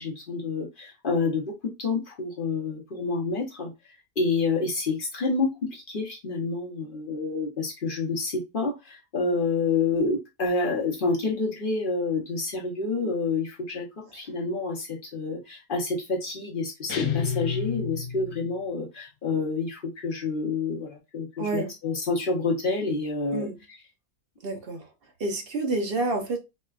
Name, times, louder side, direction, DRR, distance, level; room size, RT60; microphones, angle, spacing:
voice 1, 0.0-3.7 4.2-13.9 14.1-23.5, left 4 dB, 40° left, 0.8 m, -28 dB
sound 1, 16.9-18.6, left 7 dB, 75° left, 1.2 m, -30 dB
voice 2, 21.4-21.7 23.3-23.6 24.4-24.9 25.2-26.4, right 2 dB, 60° right, 0.6 m, -28 dB
4.1 x 2.3 x 2.3 m
omnidirectional pair, 1.6 m